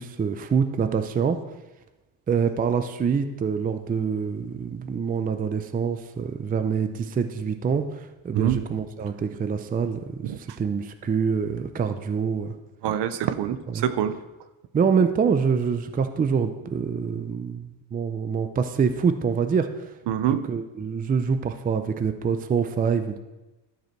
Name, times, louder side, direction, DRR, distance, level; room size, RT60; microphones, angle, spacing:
voice 1, 0.0-1.4 2.3-12.5 13.7-13.9 14.7-19.9 20.5-23.2, right 6 dB, 20° right, 9 dB, 0.4 m, -25 dB
voice 2, 12.8-14.2 20.1-20.5, right 10 dB, 60° right, 12 dB, 0.7 m, -25 dB
12.0 x 4.9 x 4.4 m, 1.1 s
cardioid pair, 110°, 47 cm